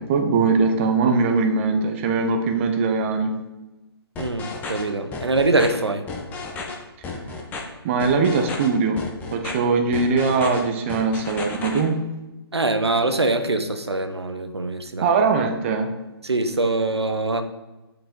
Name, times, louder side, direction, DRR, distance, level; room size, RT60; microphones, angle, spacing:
voice 1, 0.0-3.4 7.8-9.0 9.3-12.0 15.0-15.9, right 4 dB, 30° right, 5 dB, 0.8 m, -21 dB
sound 1, 4.2-4.8 5.1-5.7 6.1-6.7 7.0-7.6 8.0-8.7 9.0-9.5 9.9-10.6 10.9-11.8, left 4 dB, 10° left, 0.8 m, -32 dB
voice 2, 4.2-6.1 12.5-15.1 16.2-17.4, right 2 dB, 85° right, 7 dB, 0.8 m, -23 dB
8.8 x 5.0 x 3.7 m, 1.0 s
figure-of-eight pair, 140°, 13 cm